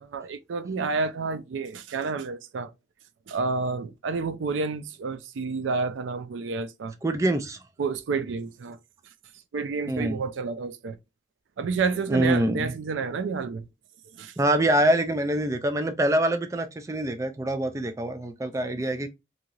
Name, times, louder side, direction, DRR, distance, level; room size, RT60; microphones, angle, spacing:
voice 1, 0.0-2.7 3.3-6.9 7.8-8.8 9.5-11.0 11.6-13.7 14.1-14.3, right 4 dB, 90° right, 0.4 m, -30 dB
voice 2, 7.0-7.6 9.9-10.2 12.1-12.7 14.4-19.1, right 1 dB, 15° right, 0.3 m, -25 dB
3.0 x 2.7 x 2.3 m
head